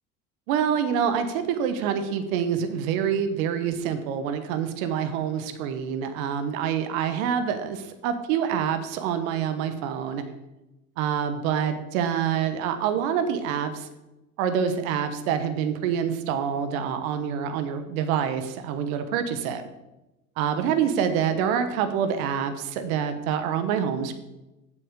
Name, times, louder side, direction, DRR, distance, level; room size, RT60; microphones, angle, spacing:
voice 1, 0.5-10.2 11.0-13.9 14.4-19.6 20.4-24.1, right 8 dB, 65° right, 9 dB, 1.1 m, -26 dB
8.0 x 6.0 x 6.7 m, 0.98 s
hypercardioid pair, 70°, 44 cm